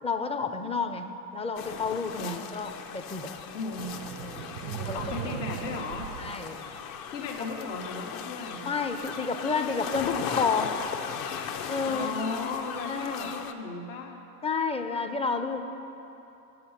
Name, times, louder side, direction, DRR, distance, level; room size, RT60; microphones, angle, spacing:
voice 1, 0.0-3.3 4.2-4.5 4.8-5.4 6.2-6.6 8.6-10.8 11.7-12.1 12.9-13.3 14.4-15.6, left 4 dB, 15° left, 7 dB, 0.4 m, -30 dB
sound 1, 1.6-13.5, left 7 dB, 45° left, 0.7 m, -38 dB
voice 2, 3.5-4.0 4.6-6.1 7.1-8.7 11.8-14.2, left 3 dB, 75° left, 1 dB, 1.3 m, -36 dB
sound 2, 3.8-7.3, right 11 dB, 85° right, 0.6 m, -39 dB
10.0 x 7.9 x 5.6 m, 2.9 s
hypercardioid pair, 85°, 50 cm